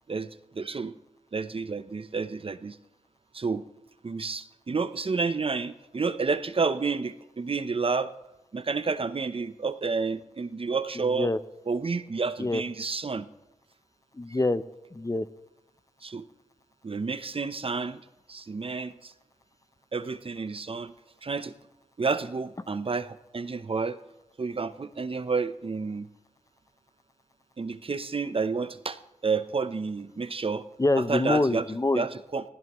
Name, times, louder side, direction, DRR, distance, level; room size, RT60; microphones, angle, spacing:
voice 1, 0.1-0.9 1.3-2.8 3.3-3.7 4.0-8.1 8.5-11.3 11.7-13.3 16.0-16.2 16.8-18.0 18.3-19.1 19.9-20.9 21.2-21.5 22.0-24.0 24.4-26.1 27.6-29.0 29.2-30.6 31.1-31.6 31.9-32.4, right 4 dB, 45° right, 13 dB, 0.8 m, -30 dB
voice 2, 11.0-11.4 12.4-12.6 14.1-14.6 14.9-15.3 30.8-32.0, left 2 dB, 25° left, 13 dB, 0.7 m, -25 dB
21.5 x 15.5 x 3.1 m, 0.95 s
cardioid pair, 45°, 14 cm